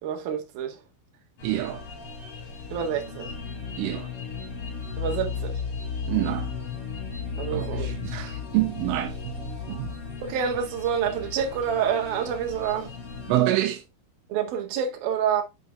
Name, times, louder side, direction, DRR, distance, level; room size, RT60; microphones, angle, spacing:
voice 1, 0.0-0.8 2.7-3.3 5.0-5.6 7.4-7.9 10.2-12.9 14.3-15.4, right 8 dB, 55° right, 3.2 m, -27 dB
sound 1, 1.4-13.4, left 5 dB, 35° left, 2.9 m, -35 dB
voice 2, 1.4-1.9 3.8-4.1 6.1-6.6 7.5-10.0 13.3-13.9, right 15 dB, 85° right, 3.5 m, -27 dB
11.0 x 5.3 x 3.4 m
omnidirectional pair, 5.8 m